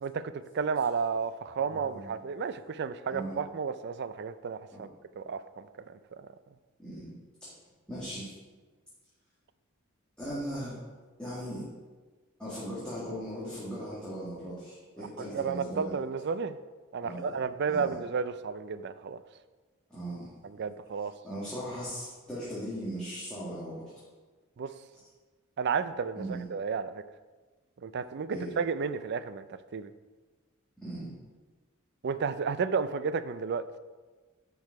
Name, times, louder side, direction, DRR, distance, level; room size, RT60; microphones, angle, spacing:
voice 1, 0.0-4.9 5.2-5.7 6.2-6.3 15.0-16.6 16.9-19.2 20.4-21.1 24.6-24.7 25.6-27.0 27.8-29.5 29.7-29.9 32.0-33.6, right 5 dB, 50° right, 13 dB, 0.4 m, -32 dB
voice 2, 1.6-2.1 3.1-3.4 4.7-4.8 6.8-7.1 7.4-7.5 7.9-8.3 10.2-10.8 11.2-11.7 12.4-15.9 17.0-17.4 17.7-18.0 19.9-20.3 21.2-23.9 26.2-26.4 28.3-28.5 30.8-31.1, equal, 5° left, -10 dB, 1.9 m, -38 dB
10.5 x 4.7 x 4.7 m, 1.3 s
head